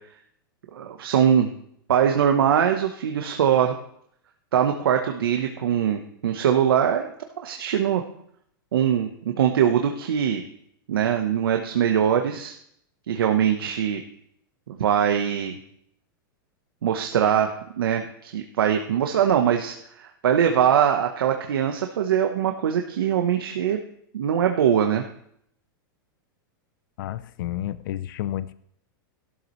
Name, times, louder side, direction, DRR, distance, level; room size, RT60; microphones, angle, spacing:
voice 1, 0.7-1.5 1.9-3.8 4.5-7.1 7.4-8.0 8.7-10.4 10.9-12.5 13.1-14.0 14.7-15.5 16.8-23.8 24.1-25.0, right 9 dB, 90° right, 4 dB, 1.1 m, -22 dB
voice 2, 27.0-28.5, left 12 dB, 65° left, 15 dB, 0.6 m, -30 dB
16.0 x 12.5 x 3.2 m, 0.71 s
hypercardioid pair, 130°, 12 cm